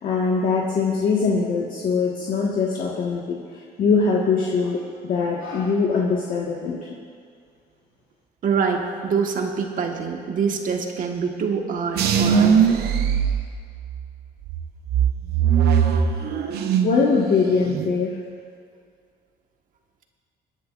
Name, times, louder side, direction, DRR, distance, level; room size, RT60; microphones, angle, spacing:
voice 1, 0.0-3.4 3.8-6.8 16.8-18.1, left 4 dB, 55° left, -5 dB, 1.6 m, -22 dB
voice 2, 8.4-12.8, right 5 dB, 55° right, 2 dB, 1.5 m, -25 dB
sound 1, 12.0-14.0 14.5-17.0 17.3-17.9, right 7 dB, 70° right, 0.9 m, -20 dB
26.5 x 10.0 x 2.5 m, 2.2 s
cardioid pair, 110°, 17 cm